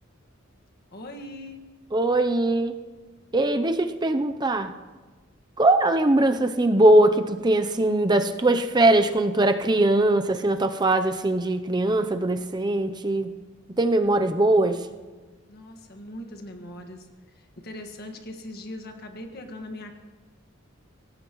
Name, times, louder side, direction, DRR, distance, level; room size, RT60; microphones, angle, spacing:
voice 1, 0.9-1.6 15.5-17.1 17.3-19.9, left 1 dB, 55° left, 4 dB, 1.7 m, -40 dB
voice 2, 1.9-2.8 3.3-4.7 5.6-13.3 13.8-14.9, right 1 dB, 20° right, 8 dB, 0.6 m, -21 dB
24.5 x 17.5 x 3.1 m, 1.3 s
head